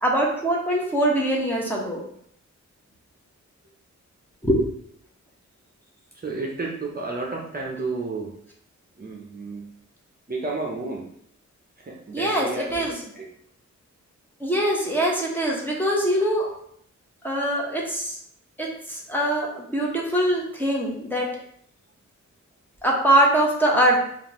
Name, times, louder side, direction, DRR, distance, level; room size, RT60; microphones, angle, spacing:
voice 1, 0.0-2.0 4.4-4.6 12.1-13.0 14.4-16.5 17.2-18.2 18.6-21.3 22.8-24.1, right 1 dB, 5° left, -3 dB, 1.0 m, -23 dB
voice 2, 6.1-8.3 9.0-9.6 10.3-11.0 11.8-13.3, right 3 dB, 30° right, -2 dB, 0.7 m, -32 dB
5.0 x 2.5 x 2.9 m, 0.68 s
wide cardioid pair, 85°, 29 cm